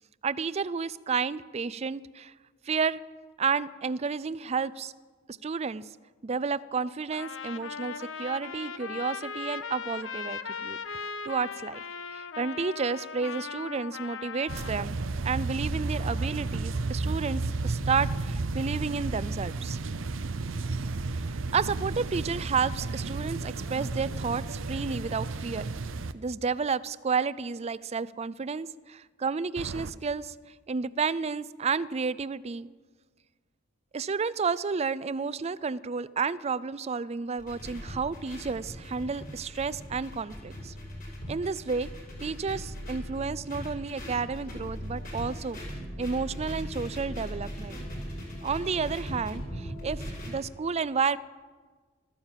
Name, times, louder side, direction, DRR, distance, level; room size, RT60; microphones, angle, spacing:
voice 1, 0.2-2.3 2.7-3.0 3.4-4.9 5.4-5.8 6.2-10.8 11.2-11.8 12.1-15.0 15.2-19.8 21.5-25.7 26.1-30.3 30.7-32.7 33.9-40.7 41.3-41.9 42.2-45.6 46.0-47.8 48.4-51.2, right 5 dB, 35° right, 17 dB, 0.4 m, -31 dB
Trumpet, 7.1-14.8, left 6 dB, 70° left, 0.7 m, -38 dB
sound 1, 14.5-26.1 29.6-29.9, right 3 dB, 85° right, 0.7 m, -32 dB
sound 2, 37.4-50.3, equal, 45° left, 6.1 m, -39 dB
14.5 x 13.5 x 7.4 m, 1.4 s
head